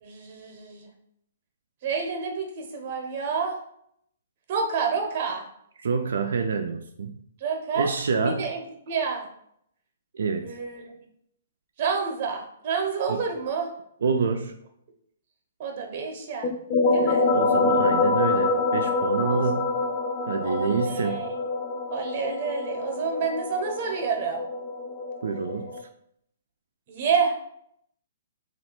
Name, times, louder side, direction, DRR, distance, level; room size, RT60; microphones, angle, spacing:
voice 1, 0.0-0.9 1.8-3.6 4.5-5.4 7.4-7.9 8.2-9.3 10.4-10.9 11.8-13.7 15.6-16.5 16.9-17.3 19.3-19.7 20.4-21.3 21.9-24.5 26.9-27.3, right 5 dB, 35° right, 3 dB, 0.8 m, -29 dB
voice 2, 5.8-7.1 7.8-8.4 10.1-10.5 13.1-13.2 14.0-14.5 17.3-19.8 20.3-21.2 25.2-25.7, right 5 dB, 80° right, 5 dB, 0.3 m, -27 dB
sound 1, 16.4-25.8, left 3 dB, 30° left, 0.3 m, -26 dB
3.2 x 2.4 x 4.4 m, 0.71 s
hypercardioid pair, 170°, 0 cm